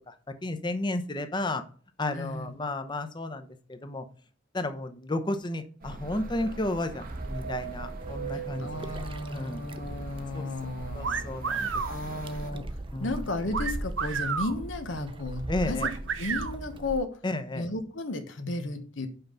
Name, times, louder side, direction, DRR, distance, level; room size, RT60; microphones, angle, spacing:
voice 1, 0.4-1.6 2.0-4.0 4.5-9.0 9.3-9.6 10.3-10.4 10.9-12.3 12.9-13.2 15.5-15.9 17.2-17.7, left 2 dB, 25° left, 9 dB, 0.8 m, -33 dB
voice 2, 2.1-2.5 8.3-11.3 11.6-15.9 16.2-17.2 17.5-19.1, left 2 dB, 85° left, 7 dB, 1.2 m, -34 dB
sound 1, 5.8-12.5, right 4 dB, 50° right, 0.9 m, -41 dB
sound 2, 7.0-17.0, right 1 dB, 25° right, 0.5 m, -40 dB
sound 3, 11.0-11.9 13.5-14.5 15.8-16.5, right 6 dB, 85° right, 0.8 m, -30 dB
5.7 x 5.3 x 5.6 m, 0.42 s
head